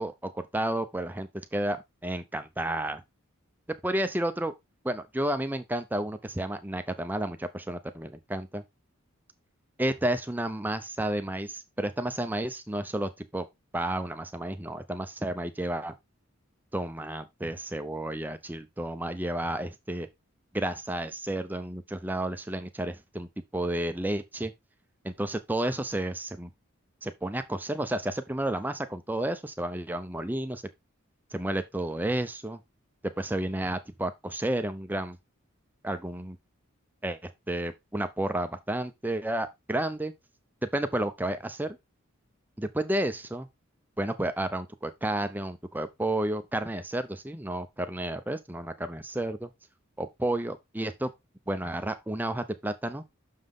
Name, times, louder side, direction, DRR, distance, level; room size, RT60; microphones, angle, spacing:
voice 1, 0.0-3.0 3.8-4.5 4.8-8.6 9.8-13.5 13.7-15.9 16.7-20.1 20.5-24.5 25.0-26.5 27.0-30.6 31.3-32.6 33.0-35.2 35.8-36.4 37.0-40.1 40.6-41.8 42.6-43.5 44.0-49.5 50.0-51.1 51.5-53.0, right 1 dB, 10° right, 0.6 m, -31 dB
6.5 x 5.6 x 3.7 m
head